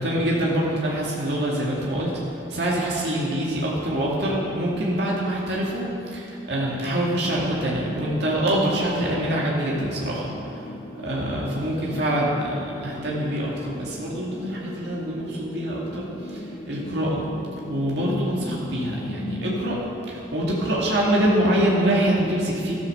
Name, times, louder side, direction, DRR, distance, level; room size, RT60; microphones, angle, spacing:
voice 1, 0.0-10.7 10.9-17.2 17.7-19.8 20.1-22.7, right 1 dB, 75° right, -5 dB, 2.2 m, -25 dB
sound 1, 7.9-19.8, left 1 dB, 35° left, 0.7 m, -37 dB
13.0 x 9.5 x 6.6 m, 2.8 s
head